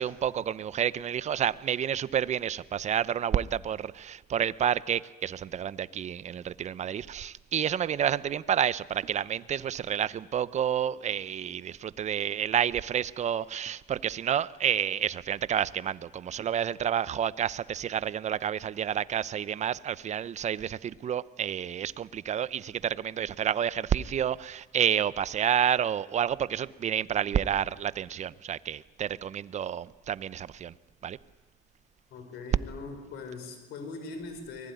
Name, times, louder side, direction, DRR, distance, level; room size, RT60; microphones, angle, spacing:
voice 1, 0.0-30.7 31.0-31.2, right 9 dB, 45° right, 18 dB, 0.7 m, -29 dB
voice 2, 32.1-34.7, left 3 dB, 75° left, 8 dB, 4.8 m, -41 dB
24.0 x 20.0 x 9.4 m, 1.3 s
cardioid pair, 110°, 17 cm